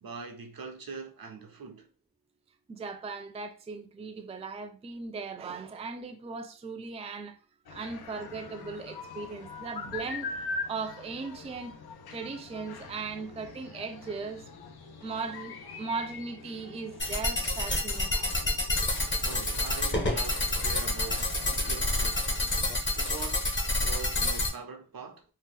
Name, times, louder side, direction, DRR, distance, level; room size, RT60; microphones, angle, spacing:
voice 1, 0.0-1.9 19.2-22.3 22.9-25.2, right 4 dB, 70° right, 0.7 m, -43 dB
voice 2, 2.7-7.4 7.7-10.3 10.7-11.7 12.1-14.5 15.0-18.4, right 4 dB, 20° right, 0.3 m, -38 dB
sound 1, 7.7-22.8, left 3 dB, 80° left, 0.6 m, -43 dB
sound 2, 17.0-24.5, left 1 dB, 30° left, 0.7 m, -28 dB
2.8 x 2.1 x 3.5 m
wide cardioid pair, 65°, 37 cm